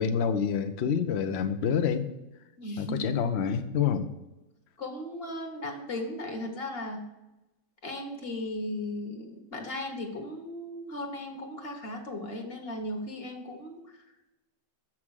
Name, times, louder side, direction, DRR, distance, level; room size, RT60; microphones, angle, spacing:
voice 1, 0.0-2.1 2.8-4.1, left 7 dB, 65° left, 9 dB, 0.6 m, -27 dB
voice 2, 2.6-3.0 4.8-7.0 7.8-14.0, left 1 dB, 35° left, 3 dB, 1.3 m, -36 dB
7.3 x 6.0 x 6.4 m, 0.97 s
omnidirectional pair, 2.0 m